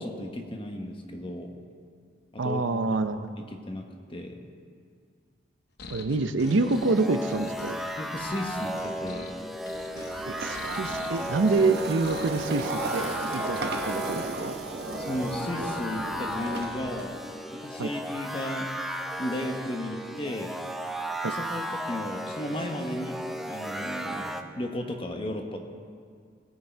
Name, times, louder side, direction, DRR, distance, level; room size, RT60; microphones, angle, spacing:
voice 1, 0.0-1.5 2.3-2.6 3.7-4.4 8.0-9.3 15.0-17.2 17.5-18.7 19.2-20.5 21.2-23.2 23.5-25.6, left 1 dB, 30° left, 3 dB, 1.1 m, -34 dB
voice 2, 2.4-3.3 5.9-7.8 10.3-14.6 17.8-17.9 21.2-21.3, right 3 dB, 85° right, 10 dB, 0.6 m, -27 dB
sound 1, 5.8-12.5, left 4 dB, 60° left, 0.8 m, -46 dB
sound 2, 6.5-24.4, equal, ahead, 0.5 m, -35 dB
sound 3, 10.0-17.0, right 3 dB, 55° right, 0.9 m, -36 dB
18.0 x 8.1 x 4.5 m, 2.1 s
head